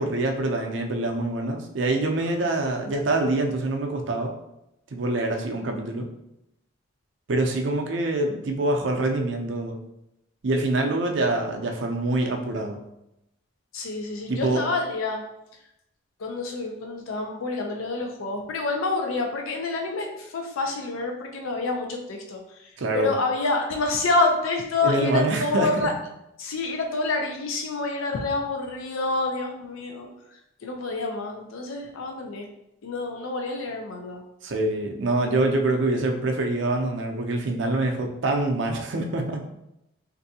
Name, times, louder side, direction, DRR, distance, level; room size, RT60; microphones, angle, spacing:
voice 1, 0.0-4.3 4.9-6.1 7.3-9.8 10.4-12.8 14.3-14.6 22.8-23.2 24.8-25.9 34.4-39.4, right 2 dB, 65° right, 3 dB, 0.5 m, -25 dB
voice 2, 13.7-15.2 16.2-20.1 20.3-22.4 22.9-25.9 26.4-30.1 30.6-32.4 32.8-34.2, left 3 dB, 90° left, 2 dB, 0.5 m, -27 dB
3.3 x 2.6 x 2.7 m, 0.84 s
head